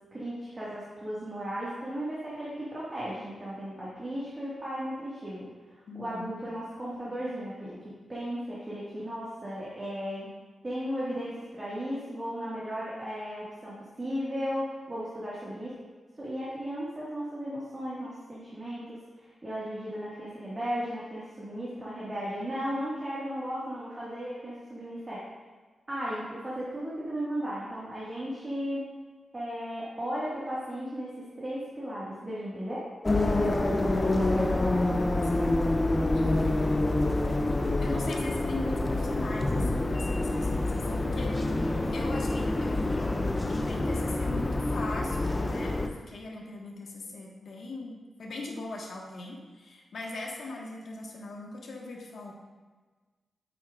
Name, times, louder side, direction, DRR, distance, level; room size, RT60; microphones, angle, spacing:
voice 1, 0.1-5.5 5.9-7.8 8.1-10.3 10.6-15.7 16.2-25.2 25.9-28.9 29.3-32.8, equal, 25° right, -8 dB, 1.6 m, -35 dB
voice 2, 5.9-6.3 33.3-35.5 36.1-36.8 37.8-41.5 41.9-42.9 43.5-52.3, left 2 dB, 65° left, -1 dB, 1.3 m, -40 dB
sound 1, 33.0-45.9, left 2 dB, 20° left, 0.5 m, -27 dB
8.7 x 8.5 x 2.4 m, 1.3 s
wide cardioid pair, 145°, 0 cm